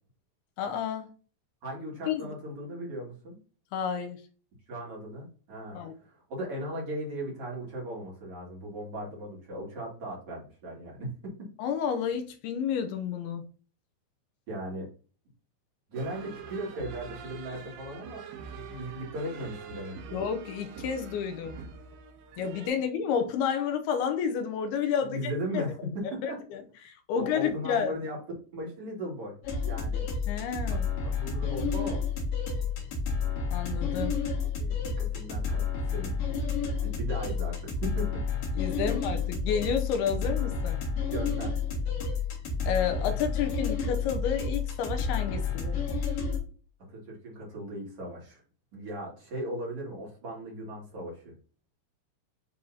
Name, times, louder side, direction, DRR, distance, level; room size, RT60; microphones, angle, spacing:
voice 1, 0.6-1.1 2.1-2.3 3.7-4.2 5.7-5.9 11.6-13.4 20.1-21.6 22.4-25.7 26.2-28.0 30.3-30.8 33.5-34.2 38.6-40.8 42.7-45.8, left 7 dB, 80° left, 2.4 m, -30 dB
voice 2, 1.6-3.4 4.7-11.3 14.5-14.9 15.9-18.2 18.5-20.2 25.0-25.8 26.1-26.4 27.1-28.2 28.5-29.4 29.6-30.1 30.7-30.8 31.2-32.0 34.4-34.7 35.0-35.6 35.9-36.1 36.8-38.2 38.8-38.9 41.1-41.5 46.9-48.4 48.7-51.2, right 1 dB, 40° right, 2.5 m, -37 dB
sound 1, 16.0-22.7, right 5 dB, 85° right, 3.2 m, -44 dB
sound 2, 29.4-46.4, left 5 dB, 55° left, 3.1 m, -30 dB
10.0 x 3.5 x 2.7 m
omnidirectional pair, 5.1 m